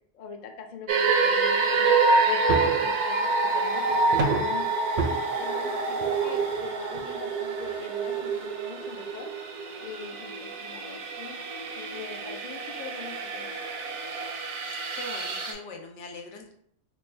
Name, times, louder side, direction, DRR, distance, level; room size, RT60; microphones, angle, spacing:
voice 1, 0.1-2.0 2.3-4.7 5.0-9.3 9.8-11.4 11.7-13.6, left 6 dB, 55° left, 4 dB, 0.5 m, -42 dB
sound 1, 0.9-15.5, right 3 dB, 85° right, 0.9 m, -27 dB
sound 2, 2.5-2.9 4.1-4.6 5.0-5.1 6.0-6.1 6.5-6.7 6.9-7.0 7.6-7.7, right 5 dB, 55° right, 0.5 m, -27 dB
voice 2, 14.6-16.5, left 3 dB, 80° left, 2 dB, 1.0 m, -42 dB
3.2 x 2.2 x 4.2 m, 0.65 s
omnidirectional pair, 1.2 m